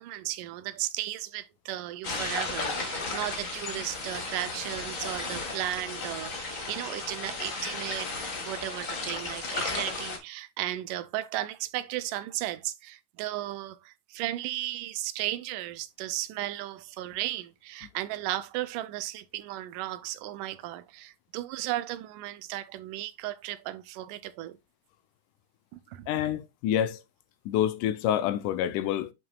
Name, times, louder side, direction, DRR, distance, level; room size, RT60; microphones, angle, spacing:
voice 1, 0.0-8.1 8.5-24.6 25.7-26.1, right 14 dB, 80° right, 2.1 m, -35 dB
sound 1, 2.0-10.2, left 3 dB, 35° left, 1.3 m, -34 dB
voice 2, 26.1-27.0 27.5-29.1, left 10 dB, 80° left, 2.0 m, -27 dB
9.2 x 5.7 x 2.3 m
omnidirectional pair, 3.8 m